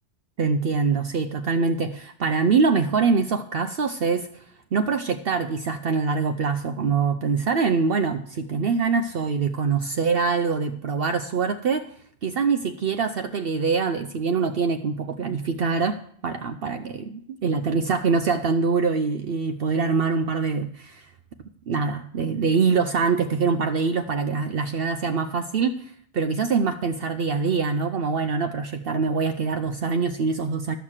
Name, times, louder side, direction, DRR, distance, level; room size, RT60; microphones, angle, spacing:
voice 1, 0.4-4.4 4.7-11.9 12.2-21.1 21.7-30.7, right 5 dB, 60° right, 8 dB, 0.8 m, -24 dB
12.5 x 6.5 x 7.3 m, 0.62 s
omnidirectional pair, 1.1 m